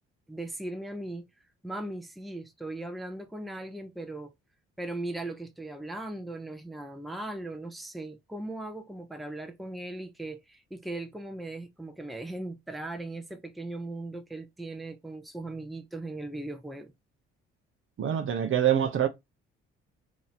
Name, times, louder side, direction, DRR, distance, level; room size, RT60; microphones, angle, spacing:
voice 1, 0.3-1.2 1.6-4.3 4.8-16.9, right 2 dB, ahead, 0.6 m, -38 dB
voice 2, 18.0-19.1, right 10 dB, 45° right, 0.7 m, -25 dB
3.0 x 2.6 x 4.0 m
hypercardioid pair, 55°, 29 cm